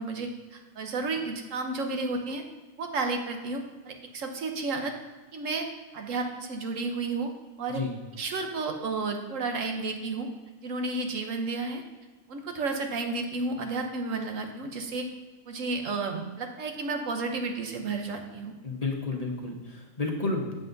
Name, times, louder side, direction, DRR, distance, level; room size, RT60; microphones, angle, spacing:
voice 1, 0.0-2.4 2.8-4.9 5.3-5.7 5.9-7.3 7.6-7.8 8.2-10.3 10.6-11.8 12.3-15.1 15.4-18.5, right 3 dB, 65° right, 4 dB, 1.4 m, -32 dB
voice 2, 18.6-20.5, left 3 dB, 30° left, 0 dB, 1.2 m, -31 dB
8.2 x 7.8 x 4.0 m, 1.3 s
omnidirectional pair, 1.4 m